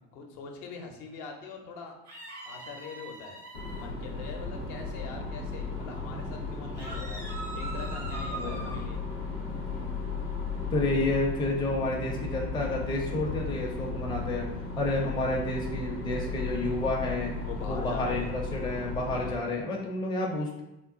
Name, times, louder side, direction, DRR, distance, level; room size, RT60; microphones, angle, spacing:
voice 1, 0.1-1.9 2.4-3.4 3.8-7.3 7.5-9.0 14.9-15.1 17.4-18.3 19.1-19.4, left 4 dB, 55° left, 2 dB, 0.7 m, -42 dB
sound 1, 2.1-3.9 6.7-8.8, right 2 dB, 90° right, 1.0 m, -41 dB
sound 2, 3.5-19.3, left 4 dB, 90° left, 0.7 m, -35 dB
sound 3, 6.9-18.7, equal, 55° right, 0.5 m, -47 dB
voice 2, 8.3-8.8 10.7-14.5 14.8-17.3 17.6-20.6, left 2 dB, 10° left, -2 dB, 0.5 m, -30 dB
3.6 x 2.3 x 2.5 m, 0.91 s
figure-of-eight pair, 60°, 45 cm